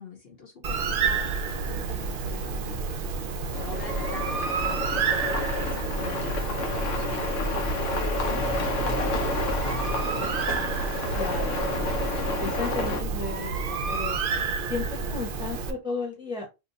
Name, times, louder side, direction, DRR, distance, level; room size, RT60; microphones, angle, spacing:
voice 1, 0.0-9.6, left 5 dB, 55° left, 1.0 m, -45 dB
Bird, 0.6-15.7, right 5 dB, 60° right, 0.6 m, -30 dB
sound 1, 3.5-13.0, left 2 dB, 85° left, 1.1 m, -30 dB
voice 2, 11.1-11.7 12.4-14.2 14.7-16.5, left 4 dB, 5° right, 0.9 m, -34 dB
2.7 x 2.2 x 3.9 m
omnidirectional pair, 1.3 m